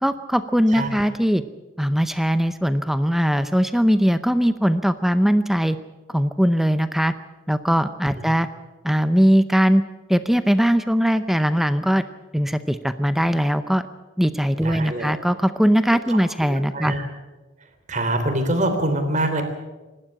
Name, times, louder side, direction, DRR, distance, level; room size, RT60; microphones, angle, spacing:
voice 1, 0.0-1.4 1.8-5.8 6.1-7.1 7.5-8.5 8.8-9.8 10.1-12.0 12.3-13.9 14.2-16.9, equal, ahead, 11 dB, 0.6 m, -20 dB
voice 2, 14.6-15.2 16.1-16.2 16.5-17.1 17.9-19.4, right 1 dB, 40° right, 7 dB, 3.4 m, -24 dB
26.0 x 12.5 x 8.8 m, 1.2 s
head